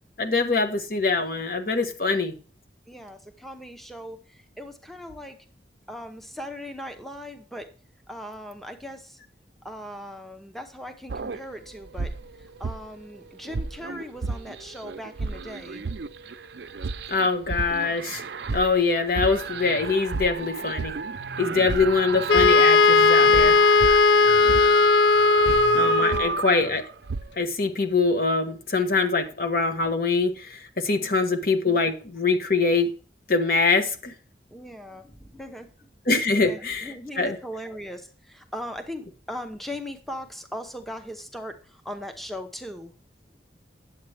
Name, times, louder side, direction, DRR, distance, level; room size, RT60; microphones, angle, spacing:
voice 1, 0.2-2.3 17.1-18.2 18.5-21.0 21.4-23.6 25.7-26.8 27.4-32.9 33.3-34.1 36.1-37.3, left 4 dB, 55° left, 1.2 m, -24 dB
voice 2, 2.9-5.4 5.9-7.7 8.1-9.2 9.6-15.8 24.4-24.9 25.2-25.6 25.9-26.5 30.9-31.2 34.5-35.9 36.4-42.9, equal, ahead, 0.8 m, -39 dB
sound 1, 11.1-13.2 13.4-27.3, right 5 dB, 70° right, 0.5 m, -31 dB
Wind instrument woodwind instrument, 22.3-26.3, left 4 dB, 85° left, 0.4 m, -17 dB
9.4 x 7.7 x 3.3 m
head